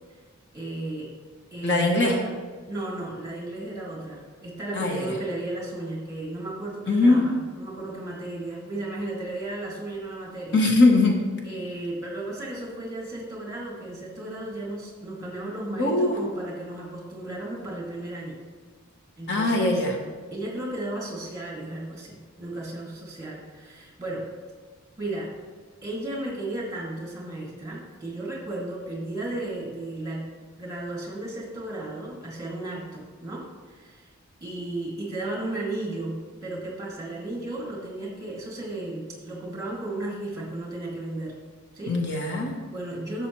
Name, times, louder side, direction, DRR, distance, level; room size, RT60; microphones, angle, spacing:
voice 1, 0.5-1.1 1.5-2.3 2.7-10.6 11.4-18.4 19.2-19.8 20.3-24.3 25.0-25.3 25.8-30.3 30.6-34.1 34.4-41.4 41.7-42.0 42.7-43.3, right 2 dB, 15° right, -3 dB, 2.2 m, -34 dB
voice 2, 1.6-2.2 4.7-5.1 6.9-7.2 10.5-11.2 15.8-16.2 19.3-19.9 41.9-42.5, left 2 dB, 55° left, 1 dB, 1.0 m, -21 dB
11.5 x 7.1 x 3.1 m, 1.5 s
head